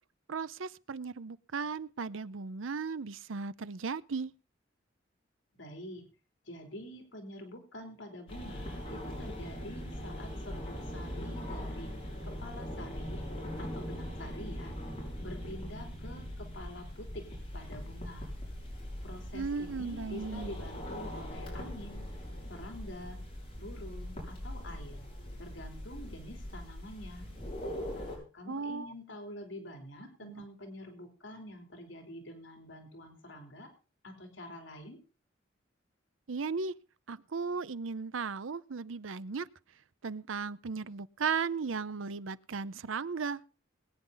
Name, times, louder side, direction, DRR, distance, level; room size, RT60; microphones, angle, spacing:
voice 1, 0.3-4.3 19.3-20.5 28.5-28.9 30.2-30.5 36.3-36.7 37.1-39.5 40.0-43.4, right 5 dB, 85° right, 0.6 m, -36 dB
voice 2, 5.5-6.1 6.4-11.9 12.2-13.2 13.6-14.7 15.2-17.2 17.5-18.3 19.0-22.1 22.5-23.2 23.6-25.0 25.4-27.3 27.9-33.7 34.0-35.0, left 1 dB, 75° left, 3.3 m, -46 dB
sound 1, 8.3-28.2, equal, 30° left, 6.1 m, -41 dB
21.5 x 9.7 x 4.0 m
head